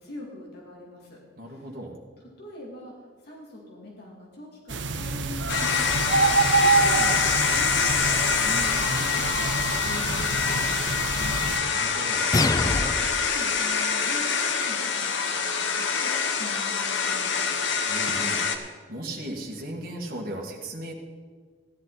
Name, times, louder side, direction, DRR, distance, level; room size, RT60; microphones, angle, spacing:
voice 1, 0.0-1.2 1.5-1.7 2.4-11.4 12.6-17.6, left 1 dB, 60° left, -3 dB, 2.6 m, -43 dB
voice 2, 1.4-1.9 11.5-12.3 17.8-20.9, right 1 dB, 55° right, -2 dB, 1.9 m, -37 dB
sound 1, 4.7-11.6, right 4 dB, 70° right, 0.8 m, -26 dB
sound 2, 5.5-18.6, left 5 dB, 75° left, 1.1 m, -25 dB
sound 3, 12.3-13.3, left 2 dB, 20° left, 0.4 m, -24 dB
15.5 x 10.5 x 4.1 m, 1.5 s
head